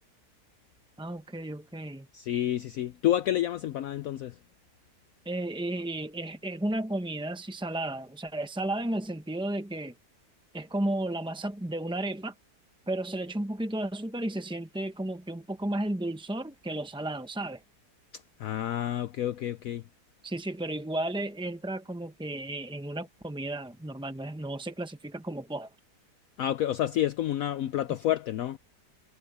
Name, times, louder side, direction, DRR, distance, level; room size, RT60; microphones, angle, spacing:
voice 1, 1.0-2.1 5.3-9.9 10.5-12.3 12.9-17.6 20.2-25.7, right 1 dB, 5° right, 0.3 m, -33 dB
voice 2, 2.1-4.4 18.4-19.8 26.4-28.6, left 12 dB, 65° left, 0.9 m, -29 dB
omnidirectional pair, 1.7 m